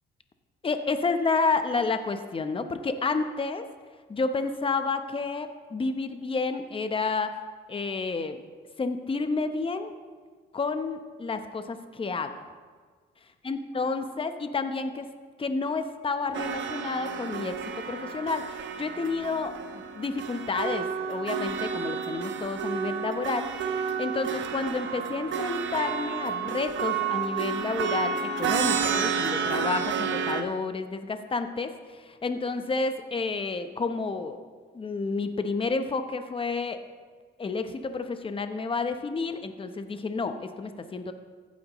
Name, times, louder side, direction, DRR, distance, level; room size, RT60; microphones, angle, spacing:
voice 1, 0.6-3.7 4.1-7.4 7.7-8.4 8.8-9.9 10.5-12.5 13.4-15.1 15.4-34.4 34.7-36.8 37.4-41.1, left 4 dB, 25° left, 8 dB, 0.8 m, -30 dB
sound 1, 16.3-30.4, right 6 dB, 70° right, 0.9 m, -30 dB
15.0 x 9.4 x 3.1 m, 1.5 s
cardioid pair, 90°, 20 cm